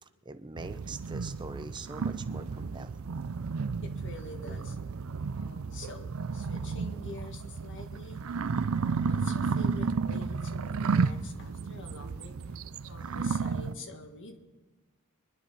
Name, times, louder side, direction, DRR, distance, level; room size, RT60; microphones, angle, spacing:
voice 1, 0.0-3.0, right 3 dB, 20° right, 9 dB, 0.7 m, -43 dB
sound 1, 0.6-13.7, right 5 dB, 65° right, 0.5 m, -32 dB
voice 2, 3.8-4.8 5.3-14.4, left 2 dB, 55° left, 4 dB, 1.7 m, -47 dB
24.5 x 11.0 x 4.2 m, 1.2 s
head